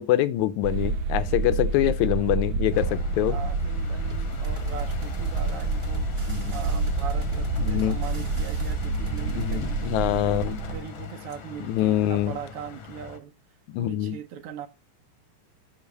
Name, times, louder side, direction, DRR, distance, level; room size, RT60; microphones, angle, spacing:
voice 1, 0.0-3.4 6.3-6.5 7.6-8.0 9.3-10.6 11.7-12.3 13.7-14.2, left 13 dB, 85° left, 2.0 m, -25 dB
sound 1, 0.6-10.8, right 3 dB, 90° right, 1.2 m, -28 dB
sound 2, 2.7-13.2, left 6 dB, 60° left, 1.4 m, -41 dB
voice 2, 3.3-10.4 10.7-13.3 13.8-14.7, right 8 dB, 75° right, 1.3 m, -40 dB
sound 3, 4.1-9.7, left 2 dB, 15° right, 1.0 m, -38 dB
7.2 x 4.0 x 6.5 m
omnidirectional pair, 3.4 m